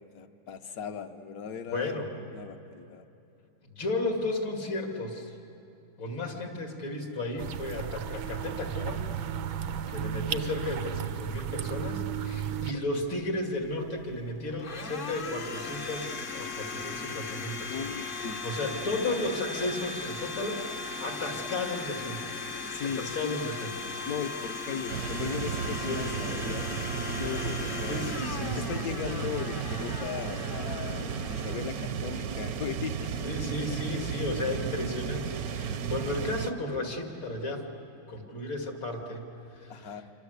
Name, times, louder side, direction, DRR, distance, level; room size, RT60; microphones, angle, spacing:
voice 1, 0.0-2.0 2.3-3.0 12.5-12.7 17.7-18.4 22.7-23.4 24.0-28.0 28.6-33.2 39.7-40.0, left 7 dB, 55° left, 9 dB, 1.2 m, -37 dB
voice 2, 1.7-2.1 3.6-5.4 6.0-9.0 9.5-22.3 22.9-23.7 25.8-26.1 27.9-29.1 33.2-37.7 38.1-40.0, left 2 dB, 75° left, 2 dB, 3.4 m, -34 dB
sound 1, 7.4-12.7, right 8 dB, 80° right, 1.6 m, -34 dB
Domestic sounds home sounds, 13.6-32.4, left 4 dB, 40° left, 0.8 m, -38 dB
sound 2, 24.9-36.5, right 7 dB, 60° right, 1.1 m, -34 dB
28.0 x 24.5 x 8.1 m, 2.8 s
omnidirectional pair, 2.2 m